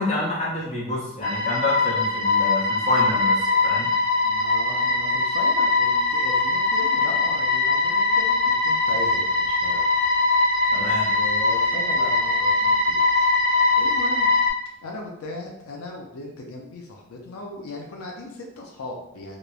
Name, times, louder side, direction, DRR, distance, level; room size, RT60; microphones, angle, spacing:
voice 1, 0.0-3.9 10.7-11.0, left 1 dB, 30° left, -6 dB, 0.7 m, -28 dB
sound 1, 1.2-14.5, left 3 dB, 60° right, 0.8 m, -21 dB
voice 2, 4.2-9.8 10.7-13.3 13.8-14.3 14.8-19.4, left 2 dB, 85° left, 0 dB, 0.4 m, -37 dB
2.9 x 2.0 x 2.3 m, 0.81 s
head